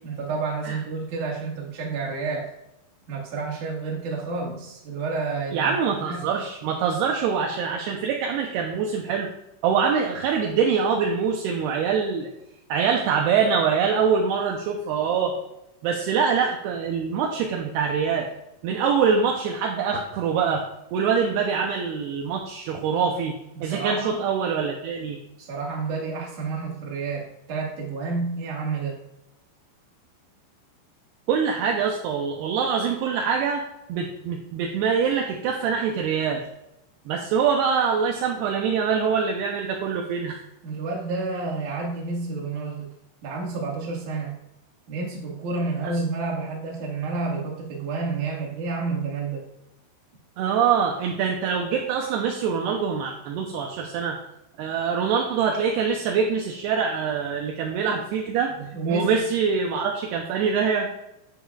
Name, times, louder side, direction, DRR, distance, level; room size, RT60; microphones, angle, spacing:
voice 1, 0.0-2.5 3.1-6.3 23.5-24.2 25.4-29.0 40.6-42.9 43.2-44.4 44.9-49.4 58.6-59.1, right 4 dB, 55° right, -2 dB, 3.0 m, -30 dB
voice 2, 5.5-9.3 9.6-12.3 12.7-15.3 15.8-18.3 18.6-20.6 20.9-23.4 23.6-25.2 31.3-33.6 33.9-36.4 37.1-40.4 50.4-54.2 54.6-58.5 58.9-60.9, right 6 dB, 75° right, 1 dB, 2.7 m, -24 dB
10.0 x 9.2 x 2.4 m, 0.86 s
omnidirectional pair, 5.0 m